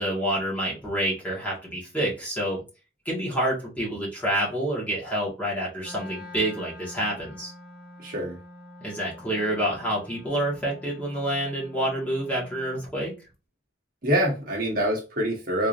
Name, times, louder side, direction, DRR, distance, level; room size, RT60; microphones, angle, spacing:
voice 1, 0.0-2.6 3.1-7.5 8.8-13.1, right 1 dB, 10° left, -5 dB, 1.7 m, -28 dB
Wind instrument woodwind instrument, 5.8-13.0, left 1 dB, 50° left, 0.8 m, -46 dB
voice 2, 8.0-8.4 14.0-15.7, equal, 50° right, -2 dB, 1.3 m, -25 dB
4.0 x 3.5 x 2.6 m, 0.29 s
head